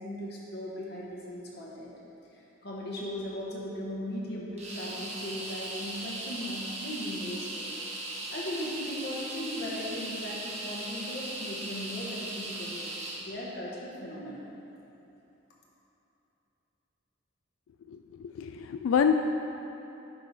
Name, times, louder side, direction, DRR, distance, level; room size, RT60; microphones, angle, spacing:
voice 1, 0.0-1.9 2.3-7.7 8.3-12.9 13.3-14.5, left 1 dB, 50° left, -5 dB, 1.0 m, -38 dB
sound 1, 4.6-13.3, right 1 dB, 30° right, 1.0 m, -38 dB
voice 2, 17.9-19.2, left 7 dB, 80° left, 6 dB, 0.3 m, -27 dB
9.9 x 4.8 x 4.1 m, 3.0 s
head